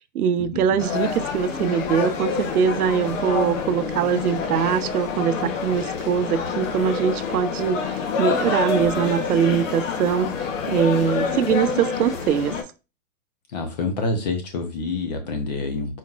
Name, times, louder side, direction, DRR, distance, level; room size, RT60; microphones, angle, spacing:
voice 1, 0.0-12.6, right 8 dB, 80° right, 0.6 m, -22 dB
sound 1, 0.8-12.6, left 6 dB, 60° left, 1.0 m, -27 dB
voice 2, 13.5-16.0, left 3 dB, 30° left, 0.7 m, -27 dB
4.3 x 3.6 x 2.4 m
hypercardioid pair, 165°, 44 cm